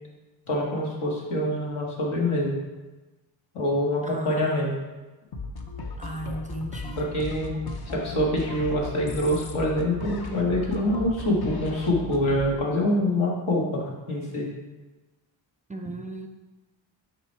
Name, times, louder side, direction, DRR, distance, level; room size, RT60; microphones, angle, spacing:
voice 1, 0.5-2.6 3.5-4.7 7.0-7.6 7.9-14.5, left 1 dB, 80° left, -2 dB, 1.8 m, -25 dB
voice 2, 4.0-4.7 6.0-7.2 15.7-16.3, right 1 dB, 15° right, 3 dB, 0.4 m, -36 dB
sound 1, 5.3-12.8, left 3 dB, 50° left, 0.8 m, -36 dB
5.9 x 5.0 x 4.6 m, 1.2 s
wide cardioid pair, 120°, 48 cm